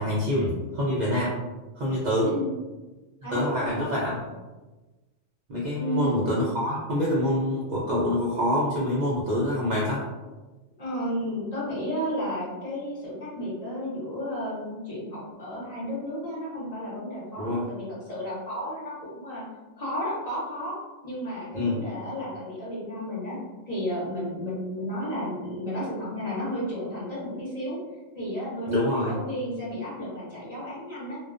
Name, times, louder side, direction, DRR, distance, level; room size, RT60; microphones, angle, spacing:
voice 1, 0.0-1.4 1.8-2.3 3.3-4.1 5.5-10.0 17.4-17.6 21.5-21.8 28.7-29.1, left 1 dB, 80° right, -6 dB, 0.4 m, -26 dB
voice 2, 3.2-3.9 5.8-6.1 10.8-19.4 19.8-20.7 21.0-23.4 23.7-27.8 28.1-31.2, equal, 35° left, -8 dB, 0.8 m, -33 dB
2.3 x 2.2 x 2.4 m, 1.2 s
omnidirectional pair, 1.4 m